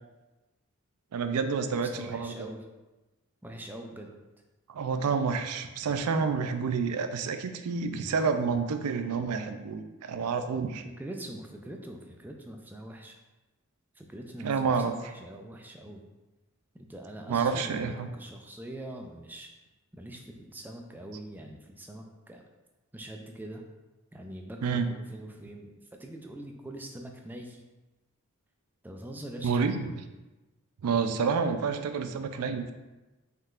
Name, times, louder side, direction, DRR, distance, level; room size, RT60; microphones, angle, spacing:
voice 1, 1.1-2.5 4.7-10.8 14.4-15.0 17.3-18.1 24.6-24.9 29.4-30.1 30.8-32.7, right 5 dB, 85° right, 9 dB, 0.4 m, -29 dB
voice 2, 1.7-2.6 3.4-4.2 11.0-13.2 14.0-16.0 16.7-19.5 19.9-22.4 22.9-23.6 24.1-25.7 26.0-27.6 28.8-29.6, right 1 dB, 10° right, 2 dB, 0.3 m, -43 dB
5.3 x 3.7 x 2.4 m, 1.1 s
head